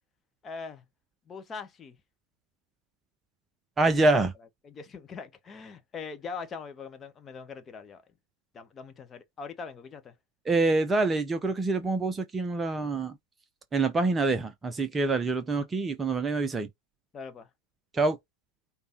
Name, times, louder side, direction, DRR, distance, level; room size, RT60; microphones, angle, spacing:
voice 1, 0.4-0.8 1.3-2.0 4.6-8.0 8.5-10.1 17.1-17.5, left 5 dB, 20° left, 0.9 m, -41 dB
voice 2, 3.8-4.3 10.5-13.2 13.7-16.7 17.9-18.2, right 3 dB, 15° right, 0.6 m, -26 dB
5.1 x 2.2 x 4.2 m
figure-of-eight pair, 90°, 0 cm